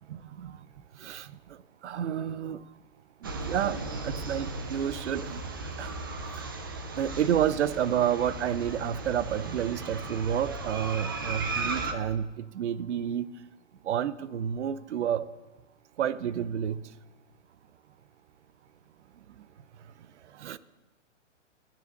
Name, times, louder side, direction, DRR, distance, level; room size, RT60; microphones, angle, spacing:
voice 1, 0.1-0.6 1.0-1.3 1.8-2.6 3.2-5.5 5.8-6.0 6.4-6.5 7.0-13.3 13.8-15.3 16.0-16.8 20.4-20.6, right 9 dB, 65° right, 17 dB, 0.7 m, -30 dB
sound 1, 3.2-11.9, right 3 dB, 20° right, 0.4 m, -36 dB
10.5 x 9.8 x 6.5 m, 1.1 s
hypercardioid pair, 165°, 37 cm